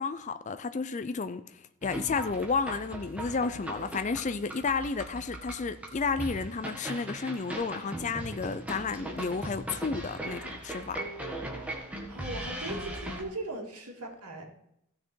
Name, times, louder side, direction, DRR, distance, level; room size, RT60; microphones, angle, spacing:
voice 1, 0.0-11.0, left 4 dB, 30° left, 0.4 m, -32 dB
sound 1, 1.8-13.2, right 1 dB, 5° right, 1.6 m, -39 dB
voice 2, 12.1-14.4, right 2 dB, 85° right, 2.6 m, -39 dB
15.0 x 6.5 x 4.5 m
head